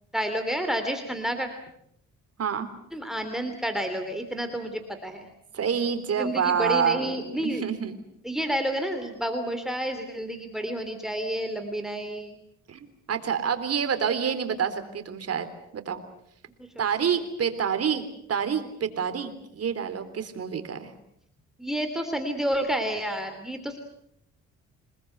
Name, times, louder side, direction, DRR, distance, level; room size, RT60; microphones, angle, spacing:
voice 1, 0.1-1.5 2.9-5.3 6.2-7.6 8.2-12.4 16.6-16.8 21.6-23.8, equal, ahead, 7 dB, 3.1 m, -30 dB
voice 2, 5.5-7.9 12.7-15.5 15.7-16.0 16.8-20.9, right 7 dB, 55° right, 9 dB, 3.6 m, -28 dB
28.5 x 20.0 x 8.0 m, 0.74 s
cardioid pair, 90°, 30 cm